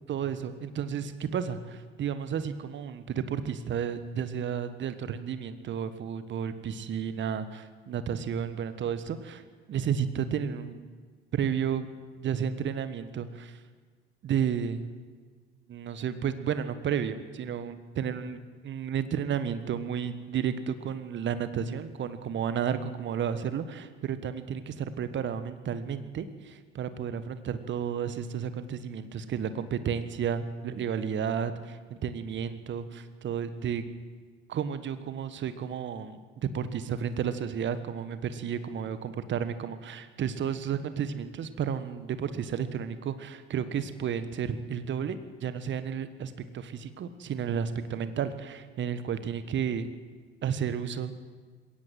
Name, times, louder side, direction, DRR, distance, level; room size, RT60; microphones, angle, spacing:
voice 1, 0.1-9.4 9.7-10.8 11.3-11.9 12.2-13.6 14.2-14.9 15.7-33.8 34.5-49.9 50.4-51.2, right 8 dB, 35° right, 12 dB, 1.5 m, -32 dB
21.0 x 17.0 x 7.7 m, 1.5 s
figure-of-eight pair, 60°, 31 cm